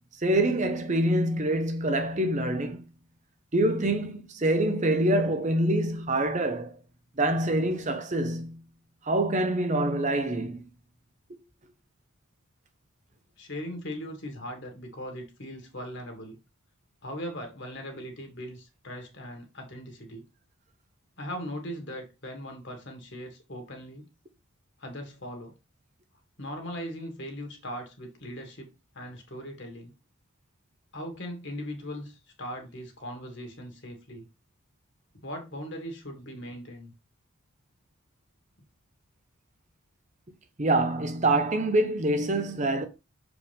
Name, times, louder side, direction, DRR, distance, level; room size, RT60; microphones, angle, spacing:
voice 1, 0.2-2.8 3.5-6.7 7.2-8.6 9.1-10.6 40.6-42.8, right 1 dB, 35° right, 0.7 m, -25 dB
voice 2, 13.4-16.4 17.0-20.3 21.2-24.1 24.8-25.6 26.4-28.7 29.0-29.9 30.9-34.2 35.1-36.9, equal, 55° left, 2.1 m, -39 dB
6.8 x 4.9 x 3.5 m
head